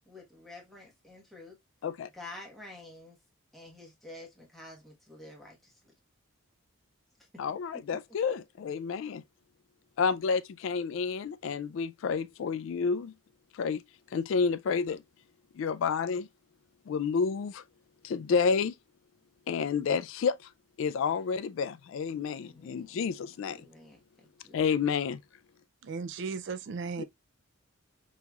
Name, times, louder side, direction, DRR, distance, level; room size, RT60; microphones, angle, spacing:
voice 1, 0.1-1.6 2.1-3.2 3.5-5.8 22.4-24.6, left 2 dB, ahead, 1.2 m, -49 dB
voice 2, 7.4-9.2 10.0-13.1 13.5-13.8 14.1-15.0 15.6-16.3 16.9-17.6 18.0-18.7 19.5-20.4 20.8-23.6 24.5-25.2 27.0-27.1, left 5 dB, 65° left, 0.3 m, -30 dB
voice 3, 25.8-27.0, right 4 dB, 55° right, 0.4 m, -36 dB
5.5 x 2.9 x 2.3 m
head